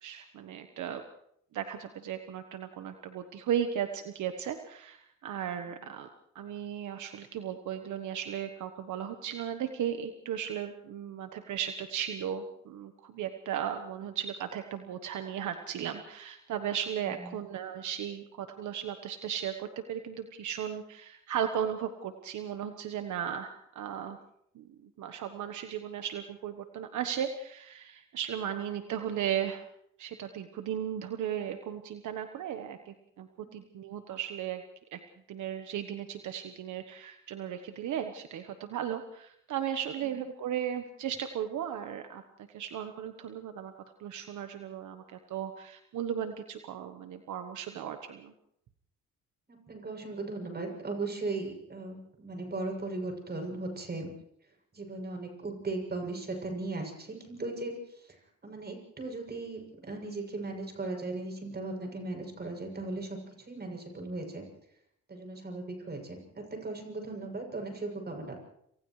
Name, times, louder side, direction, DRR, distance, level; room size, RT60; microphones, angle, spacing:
voice 1, 0.0-1.0 1.5-6.1 6.3-24.2 24.5-29.6 30.0-34.6 34.9-35.0 35.3-42.2 42.5-43.7 44.0-48.3, right 9 dB, 75° right, 7 dB, 1.2 m, -36 dB
voice 2, 17.0-17.4 33.4-33.6 40.0-40.1 49.5-54.1 54.7-64.4 65.1-68.4, right 2 dB, 35° right, 2 dB, 7.6 m, -38 dB
29.5 x 27.5 x 3.2 m, 0.74 s
cardioid pair, 90°, 30 cm